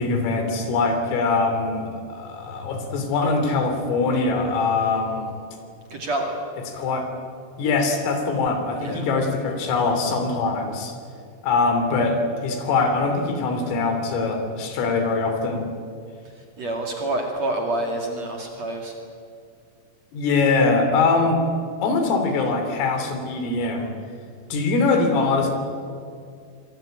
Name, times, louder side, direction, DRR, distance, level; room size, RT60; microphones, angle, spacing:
voice 1, 0.0-5.3 6.7-7.1 7.6-11.0 11.4-15.7 20.1-21.4 21.8-23.9 24.5-25.5, left 3 dB, 90° left, 5 dB, 5.7 m, -22 dB
voice 2, 5.9-6.4 8.8-9.1 16.6-18.9, right 1 dB, 45° right, 1 dB, 2.9 m, -27 dB
26.0 x 21.0 x 9.1 m, 2.3 s
omnidirectional pair, 5.7 m